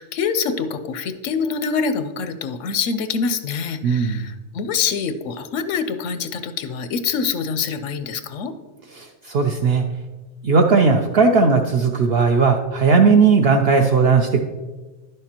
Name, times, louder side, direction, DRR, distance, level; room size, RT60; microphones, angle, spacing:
voice 1, 0.0-8.5, left 5 dB, 85° left, 11 dB, 0.9 m, -25 dB
voice 2, 3.8-4.2 9.0-9.8 10.4-14.4, right 4 dB, 65° right, 3 dB, 0.7 m, -17 dB
10.5 x 6.6 x 2.9 m, 1.3 s
omnidirectional pair, 1.3 m